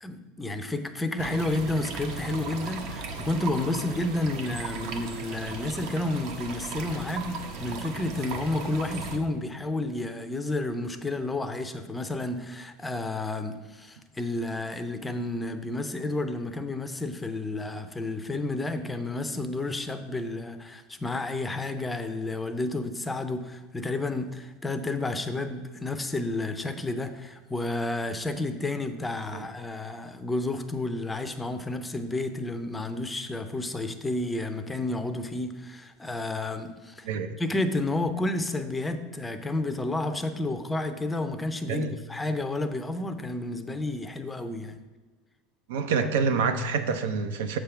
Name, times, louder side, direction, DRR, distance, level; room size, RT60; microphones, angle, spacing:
voice 1, 0.0-37.1 37.4-44.8, left 2 dB, 10° left, 8 dB, 0.4 m, -31 dB
sound 1, 1.2-9.2, right 4 dB, 60° right, 0.8 m, -37 dB
voice 2, 45.7-47.6, right 5 dB, 90° right, 9 dB, 0.6 m, -27 dB
7.3 x 3.4 x 5.7 m, 1.3 s
supercardioid pair, 140°, 0 cm